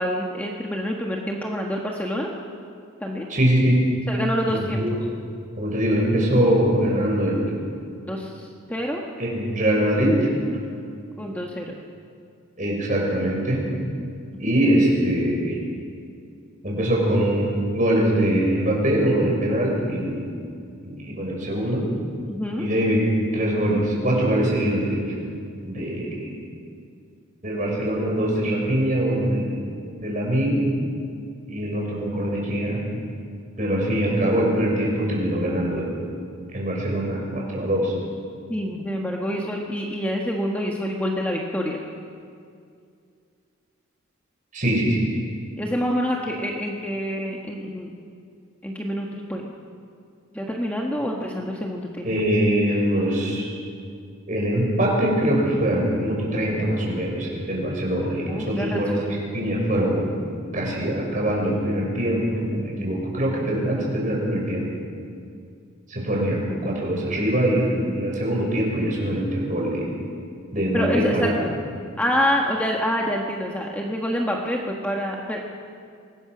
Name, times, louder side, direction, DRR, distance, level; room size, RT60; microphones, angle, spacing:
voice 1, 0.0-2.3 3.0-3.3 4.1-4.8 8.1-9.0 11.2-11.8 14.3-14.4 22.3-22.7 38.5-41.8 45.6-47.9 48.6-49.5 50.3-52.1 58.3-58.8 59.3-59.5 70.7-71.5 72.0-75.4, equal, 5° left, -1 dB, 1.5 m, -27 dB
voice 2, 3.3-3.8 4.5-4.9 5.6-7.5 9.2-10.3 12.6-13.6 14.4-15.6 16.6-20.2 20.8-21.8 22.6-25.1 25.6-26.4 27.4-29.6 30.0-30.6 31.5-32.8 33.6-36.0 36.5-37.9 44.5-45.1 52.0-53.5 54.3-64.7 65.9-69.9 70.5-71.3, right 1 dB, 40° right, -2 dB, 6.3 m, -23 dB
24.5 x 20.5 x 6.2 m, 2.4 s
head